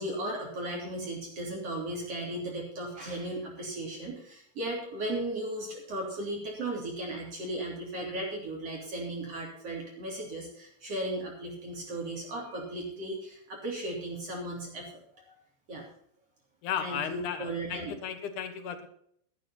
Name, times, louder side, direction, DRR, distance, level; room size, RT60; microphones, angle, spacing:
voice 1, 0.0-15.0 15.3-15.4 15.7-15.8 16.8-18.0, right 1 dB, 40° right, -2 dB, 4.1 m, -36 dB
voice 2, 16.6-18.9, left 8 dB, 65° left, 9 dB, 2.3 m, -35 dB
13.0 x 12.0 x 4.3 m, 0.67 s
omnidirectional pair, 4.5 m